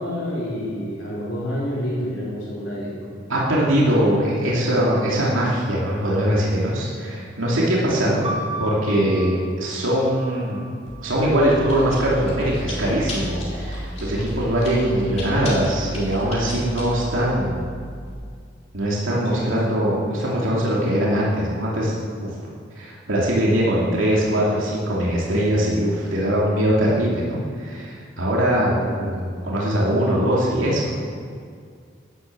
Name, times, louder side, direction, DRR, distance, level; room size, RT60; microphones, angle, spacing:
voice 1, 0.0-3.1 3.9-4.4 4.7-4.9 7.8-8.4 19.3-19.8 28.7-29.2, equal, 65° left, -9 dB, 3.9 m, -29 dB
voice 2, 3.3-8.3 8.6-10.6 11.0-17.6 18.7-21.9 22.2-22.3 22.8-31.1, equal, 75° right, -5 dB, 2.7 m, -21 dB
sound 1, 8.2-12.1 12.9-13.6, right 1 dB, 30° right, 1.8 m, -36 dB
Chewing mastication, 10.9-18.1, equal, 30° left, 3.4 m, -33 dB
11.5 x 11.0 x 7.3 m, 2.1 s
head